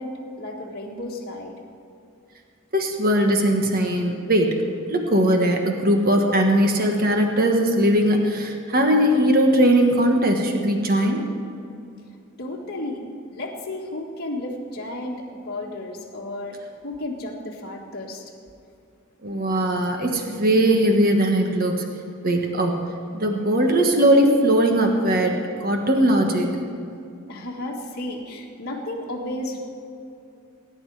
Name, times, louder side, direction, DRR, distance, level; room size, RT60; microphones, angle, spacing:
voice 1, 0.0-1.5 12.4-15.2 15.5-18.2 27.3-29.6, left 1 dB, 45° left, -4 dB, 1.8 m, -33 dB
voice 2, 2.7-4.5 4.9-11.2 19.2-21.9 22.2-22.8 23.1-26.5, right 1 dB, 40° right, 3 dB, 1.4 m, -19 dB
20.0 x 10.0 x 4.9 m, 2.6 s
head